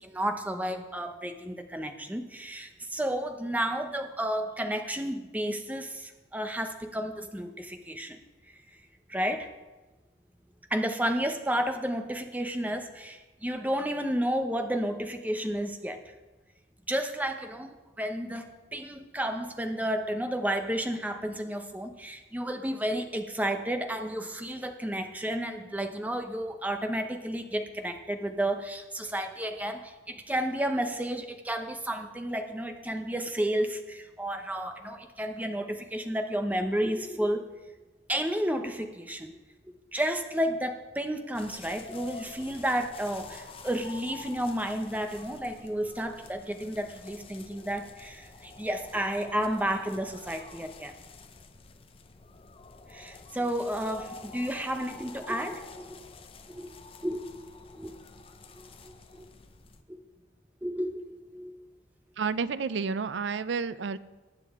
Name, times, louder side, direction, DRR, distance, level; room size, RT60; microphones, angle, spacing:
voice 1, 0.0-8.2 9.1-9.5 10.7-16.0 16.9-17.7 18.0-37.4 38.1-39.3 39.9-50.9 52.9-56.1 56.5-56.7 57.0-57.2 57.6-57.9 58.6-59.3 59.9-60.0 60.6-61.5, right 1 dB, 10° right, 6 dB, 0.8 m, -32 dB
sound 1, 41.3-59.8, left 4 dB, 30° left, 0.7 m, -48 dB
voice 2, 62.2-64.0, right 5 dB, 70° right, 16 dB, 0.4 m, -30 dB
19.5 x 7.6 x 3.6 m, 1.2 s
head